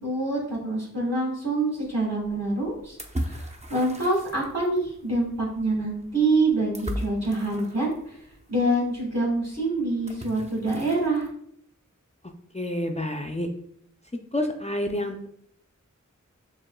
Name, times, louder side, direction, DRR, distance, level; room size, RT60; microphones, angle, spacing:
voice 1, 0.0-8.2 8.5-11.3, right 2 dB, 55° right, -7 dB, 1.7 m, -26 dB
sound 1, 1.8-11.3, equal, 20° right, 0.6 m, -39 dB
voice 2, 12.5-13.5 14.3-15.3, left 1 dB, 20° left, 4 dB, 0.5 m, -28 dB
6.8 x 3.0 x 2.3 m, 0.68 s
wide cardioid pair, 50°, 31 cm